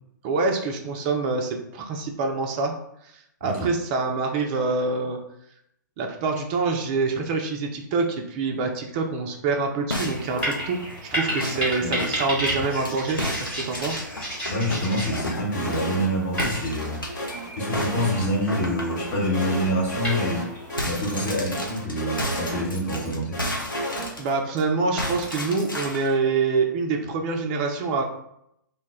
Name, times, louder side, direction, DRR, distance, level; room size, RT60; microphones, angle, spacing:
voice 1, 0.2-2.7 3.4-5.2 6.0-10.8 11.1-14.0 24.2-28.0, right 4 dB, 25° right, 2 dB, 0.3 m, -26 dB
voice 2, 3.4-3.7 11.8-12.0 14.5-17.0 17.5-20.5 20.8-23.4, equal, 35° left, -2 dB, 0.9 m, -26 dB
sound 1, 9.9-12.9 13.2-16.0 16.4-17.3 17.7-19.5 19.9-20.0 20.3-24.6 25.0-26.1, left 1 dB, 90° left, 0.6 m, -33 dB
sound 2, 10.0-20.8, equal, 10° left, 1.0 m, -33 dB
sound 3, 15.5-16.1 16.3-16.4 16.8-18.6 19.0-20.4 20.7-20.8 21.1-23.0 23.3-24.1, equal, 55° left, 1.1 m, -32 dB
2.2 x 2.1 x 3.4 m, 0.76 s
figure-of-eight pair, 120°, 11 cm